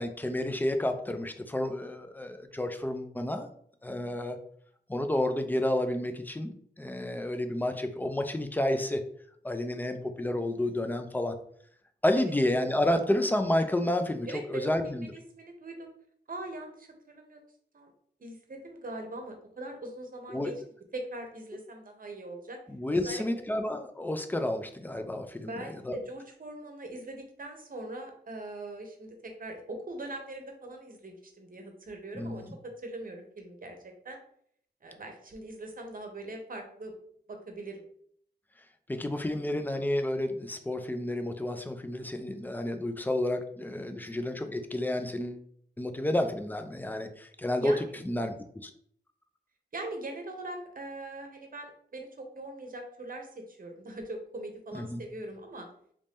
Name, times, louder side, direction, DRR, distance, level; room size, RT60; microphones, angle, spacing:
voice 1, 0.0-3.5 3.8-4.4 4.9-9.0 9.4-11.3 12.0-15.1 20.3-20.5 22.7-26.0 32.1-32.5 38.9-45.4 45.8-47.7 48.0-48.3 48.6-48.7 54.7-55.0, left 1 dB, 10° left, 7 dB, 0.4 m, -30 dB
voice 2, 3.9-4.2 9.6-9.7 12.1-12.3 14.3-15.9 16.3-17.4 17.7-17.9 18.2-20.5 20.9-22.6 22.9-23.2 25.5-34.2 34.8-36.9 37.3-37.8 47.6-48.0 49.7-55.7, right 2 dB, 55° right, 3 dB, 0.8 m, -41 dB
3.1 x 2.6 x 3.5 m, 0.63 s
wide cardioid pair, 90°, 18 cm